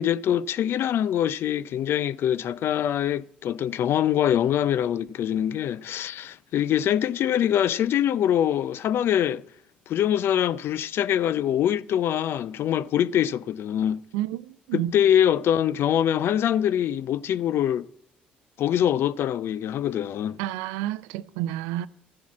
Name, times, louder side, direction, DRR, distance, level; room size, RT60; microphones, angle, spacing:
voice 1, 0.0-9.4 9.9-14.0 14.7-17.9 18.6-20.4, left 10 dB, 55° left, 0.5 m, -24 dB
voice 2, 14.1-14.9 20.4-21.9, right 13 dB, 75° right, 0.5 m, -30 dB
13.5 x 7.1 x 7.4 m
hypercardioid pair, 50°, 5 cm